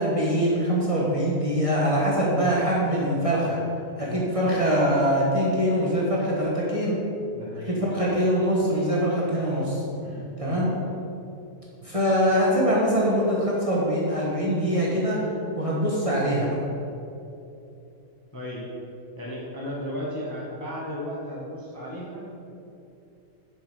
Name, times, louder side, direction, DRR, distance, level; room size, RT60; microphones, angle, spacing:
voice 1, 0.0-3.6 4.0-7.0 7.7-9.8 10.4-10.7 11.8-15.2 15.5-16.5, equal, 20° right, -5 dB, 1.3 m, -23 dB
voice 2, 7.3-7.8 10.0-10.7 18.3-18.6 19.2-22.4, equal, 15° left, -5 dB, 1.0 m, -35 dB
7.2 x 6.4 x 5.0 m, 2.7 s
omnidirectional pair, 1.8 m